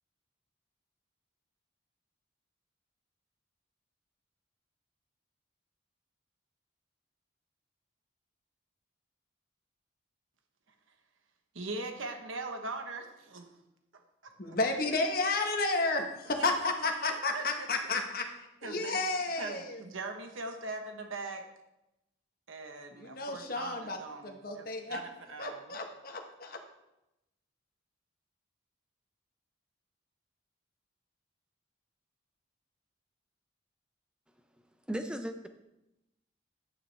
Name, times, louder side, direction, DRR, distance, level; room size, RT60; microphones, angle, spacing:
voice 1, 11.5-13.6 14.2-14.6 16.4-16.5 17.0-17.7 18.6-19.0 19.4-21.5 22.5-25.8, right 3 dB, 85° right, 5 dB, 1.1 m, -41 dB
voice 2, 14.4-18.3 18.6-19.8 22.9-24.0 24.2-25.0 25.4-26.6, left 3 dB, 45° left, 3 dB, 1.3 m, -32 dB
voice 3, 34.9-35.5, right 1 dB, 5° right, 6 dB, 0.6 m, -35 dB
11.0 x 9.0 x 3.4 m, 0.90 s
head